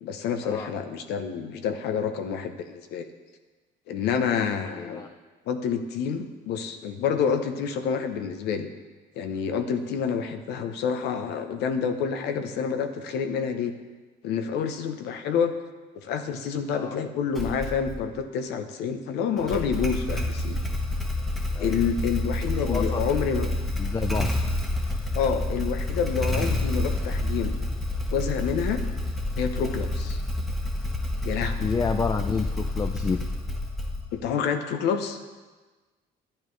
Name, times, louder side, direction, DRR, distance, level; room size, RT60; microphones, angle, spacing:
voice 1, 0.0-3.1 3.9-5.0 5.5-8.7 9.2-13.7 14.2-15.5 15.9-20.6 21.6-23.5 25.1-27.5 28.1-28.8 29.4-30.2 31.2-31.7 34.1-35.2, left 6 dB, 80° left, 8 dB, 0.8 m, -28 dB
voice 2, 4.7-5.1 16.7-17.0 21.6-21.8 22.6-23.2 23.8-24.3 31.6-33.3, left 5 dB, 20° left, 7 dB, 0.4 m, -29 dB
Motorcycle / Engine starting, 17.3-18.0 19.4-34.3, left 2 dB, ahead, 1.1 m, -29 dB
11.5 x 8.5 x 3.2 m, 1.3 s
cardioid pair, 110°, 17 cm